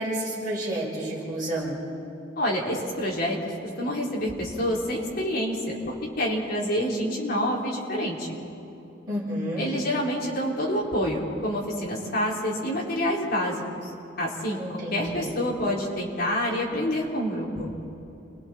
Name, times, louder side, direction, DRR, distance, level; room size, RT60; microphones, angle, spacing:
voice 1, 0.0-1.8 9.1-9.7 14.6-15.3, right 1 dB, 20° right, -8 dB, 7.0 m, -30 dB
voice 2, 2.4-3.4 3.8-8.3 9.6-13.9 14.2-14.6 14.9-17.7, equal, 55° left, -4 dB, 4.1 m, -27 dB
29.0 x 22.0 x 4.5 m, 2.8 s
head